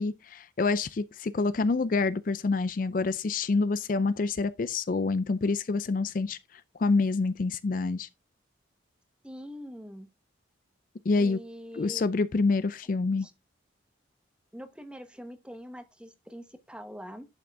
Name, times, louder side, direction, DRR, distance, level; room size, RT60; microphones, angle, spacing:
voice 1, 0.0-8.1 11.1-11.4 11.7-13.3, left 3 dB, 45° left, 0.4 m, -27 dB
voice 2, 9.2-10.1 11.2-12.1 13.2-13.3 14.5-17.3, equal, 5° right, 0.9 m, -43 dB
11.0 x 6.1 x 3.4 m
head